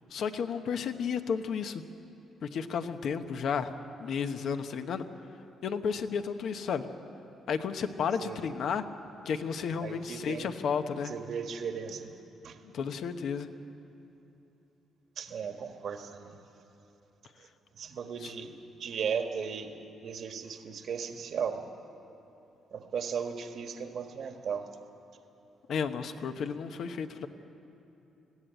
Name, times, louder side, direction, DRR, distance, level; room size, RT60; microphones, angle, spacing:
voice 1, 0.1-1.8 2.4-3.7 4.0-5.0 5.6-6.9 7.5-8.8 9.2-11.1 12.6-13.5 18.2-18.3 25.7-27.3, left 6 dB, 65° left, 8 dB, 1.0 m, -32 dB
voice 2, 9.8-10.5 11.0-12.2 12.4-12.6 15.2-16.4 17.4-17.5 17.7-18.5 18.8-21.7 22.7-24.7, right 6 dB, 60° right, 5 dB, 1.6 m, -36 dB
21.0 x 15.5 x 9.2 m, 3.0 s
cardioid pair, 90°, 0 cm